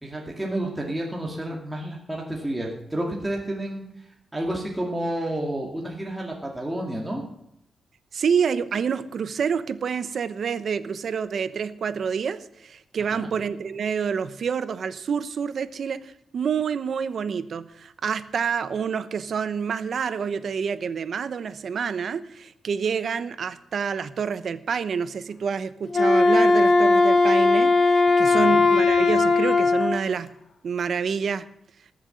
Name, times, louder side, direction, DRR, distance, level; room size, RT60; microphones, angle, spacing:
voice 1, 0.0-3.8 4.3-7.2 13.1-13.3 28.2-28.6, right 1 dB, 10° right, 2.3 m, -30 dB
voice 2, 8.1-30.3 30.6-31.5, right 6 dB, 60° right, 0.9 m, -28 dB
Wind instrument woodwind instrument, 25.9-30.0, left 3 dB, 50° left, 1.9 m, -18 dB
19.0 x 7.3 x 7.8 m
wide cardioid pair, 125°, 0 cm